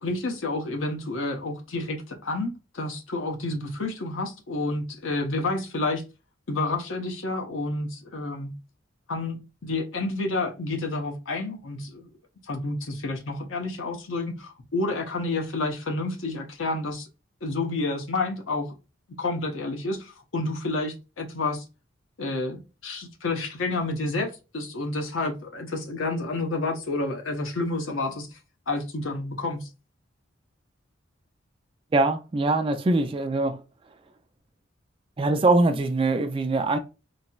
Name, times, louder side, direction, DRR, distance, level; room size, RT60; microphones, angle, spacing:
voice 1, 0.0-6.0 6.5-8.5 9.1-12.1 12.5-17.1 17.4-18.7 19.2-21.6 22.2-28.4 28.7-29.7, left 2 dB, 80° left, 0.8 m, -29 dB
voice 2, 31.9-33.6 35.2-36.8, right 2 dB, 25° right, 0.3 m, -22 dB
4.0 x 2.0 x 2.3 m
head